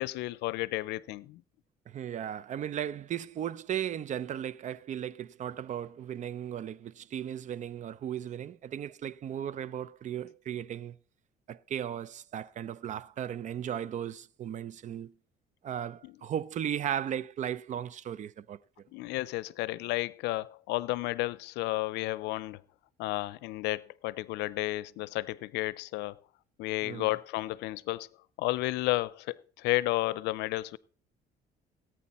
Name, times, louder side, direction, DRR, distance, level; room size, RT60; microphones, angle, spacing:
voice 1, 0.0-1.4 18.9-22.6 23.0-26.2 26.6-28.1 28.4-30.8, left 19 dB, 90° left, 0.5 m, -32 dB
voice 2, 1.9-11.0 11.5-15.1 15.6-18.6 26.8-27.1, right 10 dB, 45° right, 0.5 m, -36 dB
18.0 x 9.0 x 4.2 m
cardioid pair, 110°, 17 cm